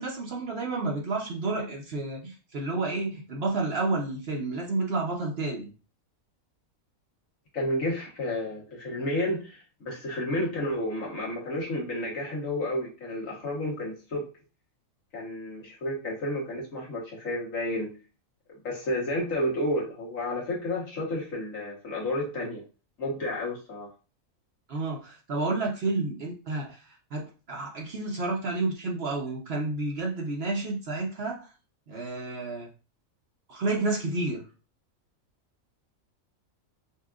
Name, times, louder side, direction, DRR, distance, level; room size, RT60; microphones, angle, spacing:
voice 1, 0.0-5.7 24.7-26.8 27.1-31.4 31.9-32.7 33.5-34.4, right 3 dB, 55° right, -1 dB, 0.9 m, -30 dB
voice 2, 7.5-14.3 15.1-18.0 18.5-22.6 23.0-23.9, left 1 dB, 70° left, -4 dB, 1.6 m, -31 dB
5.6 x 2.3 x 2.4 m, 0.34 s
omnidirectional pair, 1.4 m